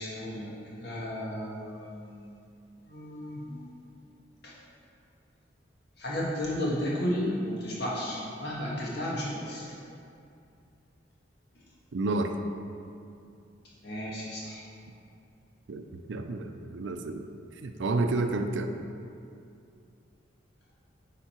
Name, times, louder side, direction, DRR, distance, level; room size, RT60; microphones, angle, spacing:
voice 1, 0.0-2.4 2.8-3.7 4.4-4.5 6.0-9.7 13.8-14.6, equal, 60° left, -5 dB, 1.7 m, -33 dB
voice 2, 11.9-12.3 15.7-17.3 17.6-18.7, right 2 dB, 70° right, 6 dB, 0.5 m, -30 dB
9.2 x 3.8 x 4.4 m, 2.5 s
head